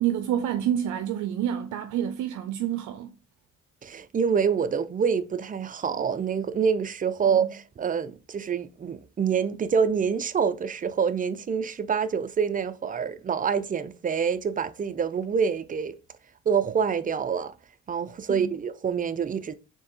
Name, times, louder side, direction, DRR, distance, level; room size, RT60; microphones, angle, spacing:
voice 1, 0.0-3.1 7.2-7.5 18.3-18.5, right 10 dB, 80° right, 0.5 m, -28 dB
voice 2, 3.8-15.9 16.5-17.5 17.9-19.5, right 6 dB, 30° right, 0.4 m, -26 dB
4.4 x 3.3 x 2.9 m
cardioid pair, 90°, 30 cm